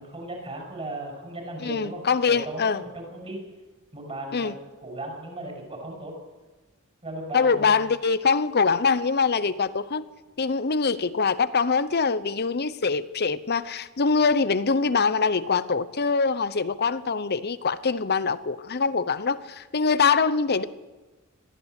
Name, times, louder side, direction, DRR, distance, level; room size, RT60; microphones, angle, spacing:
voice 1, 0.0-3.4 3.9-4.5 4.8-6.1 7.0-7.9, right 1 dB, 30° right, 6.3 m, -37 dB
voice 2, 1.6-2.8 4.3-4.5 7.3-10.0 10.4-20.7, left 5 dB, 50° left, 0.8 m, -24 dB
22.0 x 14.5 x 8.3 m
head